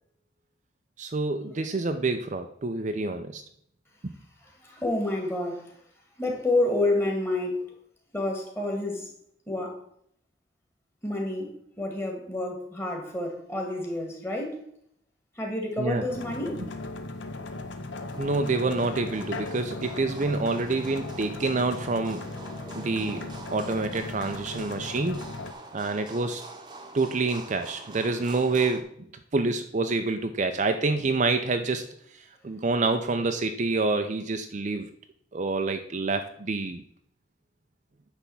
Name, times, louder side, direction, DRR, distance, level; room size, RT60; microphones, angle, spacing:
voice 1, 1.0-3.4 4.0-4.1 15.8-16.0 18.2-22.2 22.7-25.2 25.7-26.4 26.9-28.9 29.3-31.9 32.4-34.9 35.3-36.8, right 3 dB, 40° right, 0.5 m, -27 dB
voice 2, 4.4-5.8 6.2-7.7 8.1-9.1 9.5-9.8 11.0-14.6 15.4-16.6, left 2 dB, 15° left, 1.9 m, -29 dB
sound 1, 16.1-25.5, left 2 dB, 70° left, 0.9 m, -38 dB
sound 2, 17.7-28.8, right 2 dB, 25° right, 1.0 m, -45 dB
10.0 x 3.5 x 7.0 m
head